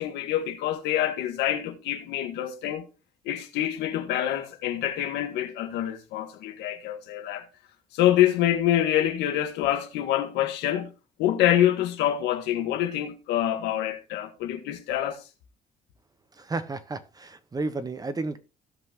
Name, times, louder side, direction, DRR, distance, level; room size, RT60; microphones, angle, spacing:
voice 1, 0.0-2.9 3.3-7.5 7.9-10.9 11.2-15.2, left 12 dB, 90° left, 1.7 m, -26 dB
voice 2, 16.4-18.4, right 3 dB, 20° right, 1.2 m, -32 dB
16.5 x 5.6 x 3.0 m
cardioid pair, 110°, 17 cm